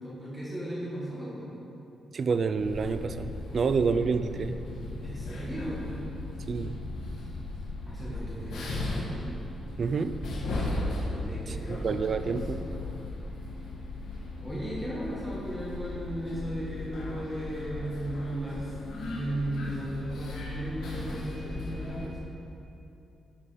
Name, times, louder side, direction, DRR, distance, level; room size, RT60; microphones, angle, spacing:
voice 1, 0.0-1.5 5.0-5.9 7.8-9.2 11.1-11.9 14.4-18.7 19.1-22.2, right 1 dB, 5° right, -8 dB, 1.5 m, -36 dB
voice 2, 2.1-4.6 6.5-6.8 9.8-10.2 11.5-12.6, right 5 dB, 40° right, 11 dB, 0.4 m, -28 dB
sound 1, 2.6-22.1, left 2 dB, 80° left, 1.7 m, -36 dB
13.0 x 5.4 x 5.0 m, 2.8 s
wide cardioid pair, 170°, 0 cm